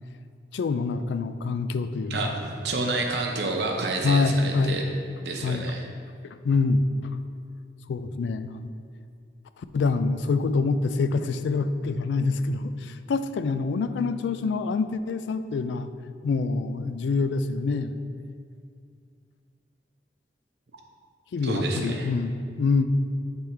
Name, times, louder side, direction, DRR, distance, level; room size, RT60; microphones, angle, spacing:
voice 1, 0.5-2.3 4.0-4.8 5.4-5.7 6.2-6.8 7.9-8.7 9.7-15.9 16.2-17.9 21.3-22.9, left 4 dB, 80° left, 11 dB, 0.3 m, -26 dB
voice 2, 2.1-4.8 5.2-5.8 21.4-22.1, right 2 dB, 70° right, 2 dB, 0.8 m, -29 dB
8.0 x 3.5 x 4.4 m, 2.3 s
head